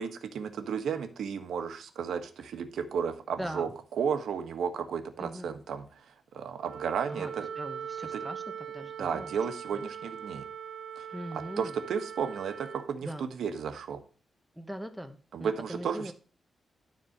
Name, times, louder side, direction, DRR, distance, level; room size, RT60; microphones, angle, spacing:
voice 1, 0.0-6.0 6.3-7.5 8.1-8.2 9.0-10.4 11.0-11.1 11.3-14.0 15.3-16.1, right 6 dB, 85° right, 8 dB, 1.4 m, -33 dB
voice 2, 5.2-5.6 7.1-9.4 9.7-9.8 11.1-11.7 13.0-13.3 14.6-16.1, right 1 dB, 5° right, 7 dB, 0.9 m, -41 dB
Wind instrument woodwind instrument, 6.6-12.9, right 8 dB, 60° right, 1.5 m, -41 dB
12.5 x 4.4 x 6.6 m, 0.38 s
wide cardioid pair, 175°, 0 cm